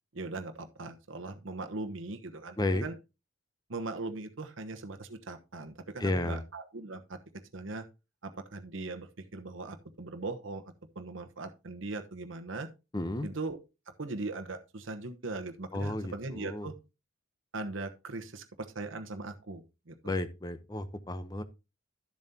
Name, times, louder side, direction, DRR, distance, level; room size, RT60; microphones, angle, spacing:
voice 1, 0.1-2.9 3.7-7.2 7.5-7.9 8.2-10.6 10.9-12.7 13.2-13.6 13.9-16.7 17.5-20.1, right 3 dB, 65° right, 7 dB, 1.0 m, -39 dB
voice 2, 6.0-6.4 12.9-13.3 15.7-16.7 20.0-21.4, left 1 dB, 20° left, 11 dB, 0.7 m, -32 dB
12.0 x 7.2 x 2.8 m, 0.28 s
head